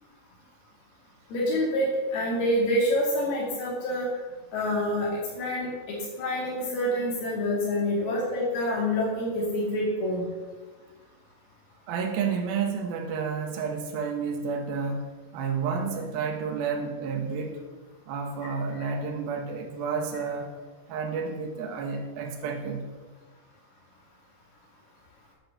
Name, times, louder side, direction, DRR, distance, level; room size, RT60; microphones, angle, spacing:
voice 1, 1.3-4.1 4.5-5.1 5.4-10.3 18.8-18.9, left 1 dB, 85° left, -4 dB, 4.2 m, -27 dB
voice 2, 11.9-17.6 18.1-20.5 20.9-22.9, right 5 dB, 75° right, 3 dB, 3.2 m, -30 dB
9.5 x 8.7 x 7.1 m, 1.3 s
omnidirectional pair, 4.3 m